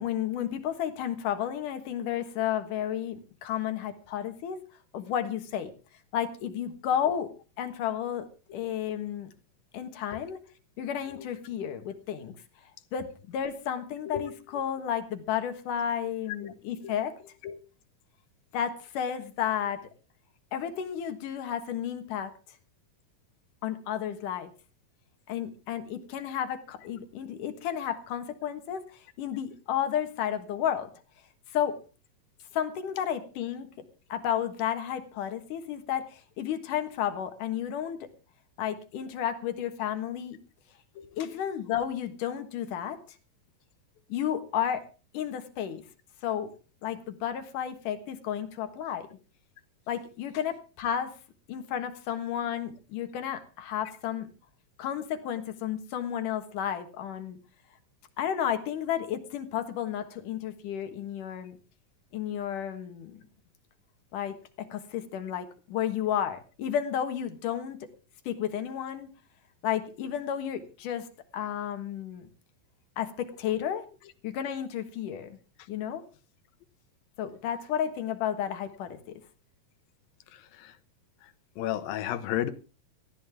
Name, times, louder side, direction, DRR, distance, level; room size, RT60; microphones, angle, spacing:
voice 1, 0.0-4.6 4.9-5.7 6.1-7.3 7.6-9.3 9.7-10.4 10.8-12.3 12.9-17.3 18.5-19.8 20.5-22.3 23.6-24.5 25.3-30.9 31.5-31.8 32.5-33.7 34.1-38.1 38.6-40.4 41.2-43.0 44.1-44.9 45.1-45.8 46.2-46.5 46.8-49.1 49.9-51.1 51.5-54.3 54.8-57.4 58.2-61.6 62.1-63.2 64.1-67.8 68.3-69.1 69.6-71.1 71.3-72.3 73.0-73.8 74.2-75.4 75.7-76.0 77.2-79.2, left 9 dB, 65° left, 8 dB, 2.9 m, -32 dB
voice 2, 81.6-82.5, left 11 dB, 80° left, 12 dB, 2.9 m, -32 dB
18.5 x 14.5 x 3.6 m, 0.34 s
omnidirectional pair, 4.1 m